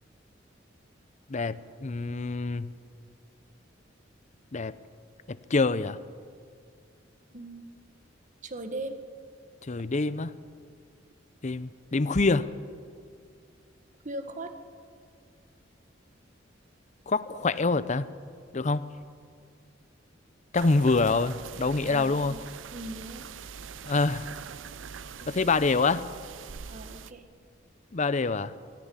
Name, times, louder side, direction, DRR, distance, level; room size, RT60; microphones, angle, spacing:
voice 1, 1.3-2.7 4.5-4.7 5.3-6.0 9.7-10.3 11.4-12.5 17.1-18.1 18.5-18.9 20.5-22.3 23.8-24.3 25.3-26.1 27.9-28.5, left 3 dB, 40° left, 15 dB, 0.6 m, -26 dB
voice 2, 7.3-7.6 8.4-9.0 14.0-14.6 20.8-21.0 21.9-22.4 22.7-23.3 25.2-25.5 26.7-27.2, right 2 dB, 40° right, 8 dB, 1.4 m, -39 dB
sound 1, 20.5-27.1, right 6 dB, 90° right, 0.6 m, -43 dB
19.0 x 14.0 x 9.9 m, 2.2 s
head